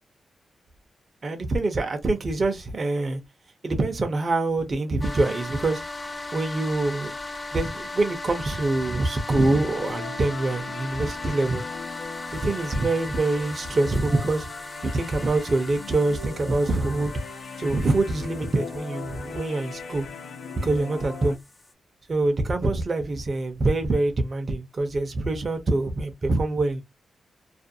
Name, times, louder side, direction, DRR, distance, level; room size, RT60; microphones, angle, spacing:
voice 1, 1.2-3.2 3.6-5.8 6.3-7.1 7.5-11.6 12.3-14.5 14.8-17.1 17.6-20.1 20.6-21.4 22.1-26.8, right 2 dB, 40° right, 0.6 m, -25 dB
sound 1, 5.0-21.7, left 2 dB, 25° left, 0.4 m, -38 dB
sound 2, 9.6-21.4, left 5 dB, 85° left, 0.5 m, -40 dB
2.4 x 2.1 x 2.6 m
cardioid pair, 95°, 0 cm